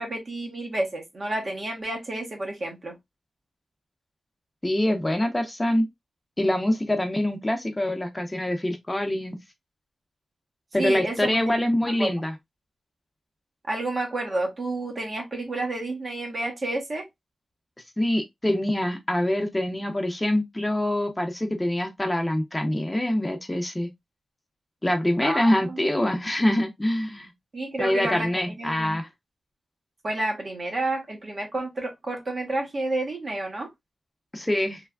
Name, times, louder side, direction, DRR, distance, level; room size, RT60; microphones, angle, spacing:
voice 1, 0.0-2.9 10.8-11.7 12.0-12.1 13.7-17.1 25.2-25.9 27.5-29.0 30.0-33.7, right 2 dB, 50° right, 1.1 m, -30 dB
voice 2, 4.6-5.9 6.4-9.4 10.7-12.3 18.0-23.9 24.8-27.3 27.8-29.1 34.3-34.8, left 1 dB, 20° left, 0.7 m, -25 dB
3.3 x 2.2 x 2.3 m
cardioid pair, 50°, 0 cm